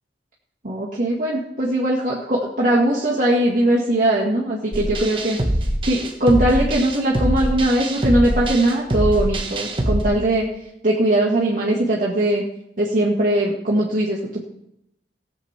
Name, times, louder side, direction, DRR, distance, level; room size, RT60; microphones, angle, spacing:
voice 1, 0.6-5.4 5.9-10.5 10.8-12.4 12.8-14.4, right 1 dB, 45° right, -5 dB, 1.9 m, -20 dB
sound 1, 4.7-10.0, right 1 dB, 30° right, 1.4 m, -23 dB
18.5 x 7.4 x 4.4 m, 0.80 s
head